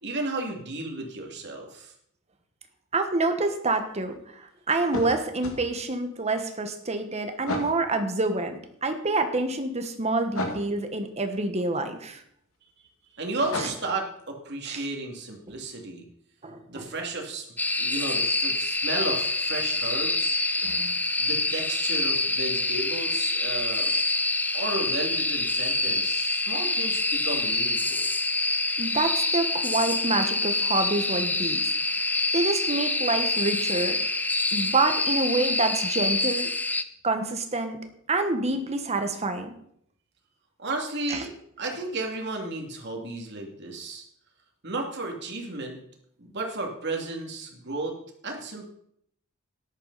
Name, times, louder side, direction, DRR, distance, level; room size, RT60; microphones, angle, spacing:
voice 1, 0.0-1.9 13.1-16.1 16.7-17.5 17.8-20.4 21.2-23.9 24.5-28.1 40.6-44.0 44.6-45.8 46.2-48.0 48.2-48.7, right 2 dB, 55° right, 1 dB, 2.6 m, -33 dB
voice 2, 2.9-12.2 14.6-14.8 16.4-16.9 20.6-20.9 28.8-31.6 32.3-34.0 34.5-36.5 37.0-37.8 38.1-39.5 41.1-41.2, right 2 dB, 30° right, 7 dB, 1.4 m, -27 dB
sound 1, 4.9-5.6 7.5-7.8 10.3-10.7 13.4-14.0, left 2 dB, 80° left, 2.1 m, -32 dB
sound 2, 17.6-36.8, left 2 dB, 10° left, 0.5 m, -26 dB
13.5 x 10.5 x 4.2 m, 0.69 s
head